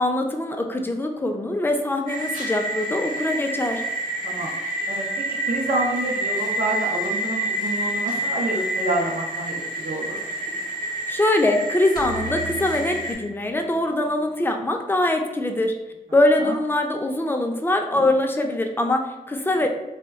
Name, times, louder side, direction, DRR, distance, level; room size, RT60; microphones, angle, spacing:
voice 1, 0.0-3.8 11.1-15.8 16.1-19.7, left 1 dB, 15° left, 3 dB, 0.4 m, -23 dB
sound 1, 2.1-13.1, right 1 dB, 60° right, 1.0 m, -28 dB
voice 2, 4.9-10.2 16.4-16.5, right 2 dB, 80° right, -2 dB, 0.5 m, -28 dB
sound 2, 12.0-14.2, right 3 dB, 80° left, 0.4 m, -37 dB
2.2 x 2.1 x 3.4 m, 1.0 s
wide cardioid pair, 65°, 15 cm